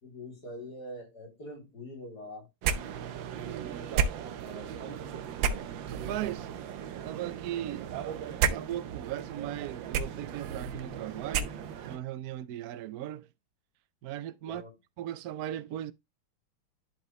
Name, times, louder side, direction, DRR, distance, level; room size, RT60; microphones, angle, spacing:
voice 1, 0.0-2.5 3.7-5.2 14.4-14.7, left 1 dB, 45° left, 3.7 m, -45 dB
sound 1, 2.6-12.0, right 7 dB, 70° right, 1.5 m, -34 dB
voice 2, 3.5-3.9 5.9-6.5 7.0-8.0 8.5-11.5 11.8-13.3 14.0-14.6 15.0-15.9, right 12 dB, 90° right, 0.8 m, -37 dB
11.0 x 4.9 x 3.1 m
omnidirectional pair, 2.3 m